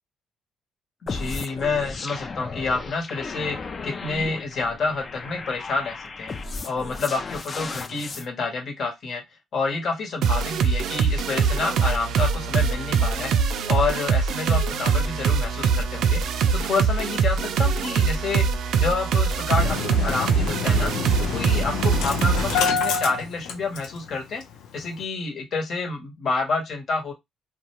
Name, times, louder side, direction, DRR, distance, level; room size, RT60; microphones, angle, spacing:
voice 1, 1.1-3.6 3.8-6.3 6.6-9.2 9.5-16.2 16.5-18.4 18.8-20.9 21.2-24.4 24.7-27.1, left 4 dB, 60° left, 1.2 m, -28 dB
sound 1, 1.1-8.2, left 4 dB, 40° left, 0.5 m, -35 dB
sound 2, 10.2-22.6, right 6 dB, 75° right, 0.4 m, -23 dB
Engine starting, 19.6-24.1 24.4-24.5 24.8-25.0, left 6 dB, 90° left, 0.5 m, -27 dB
2.4 x 2.3 x 3.0 m
cardioid pair, 90°, 0 cm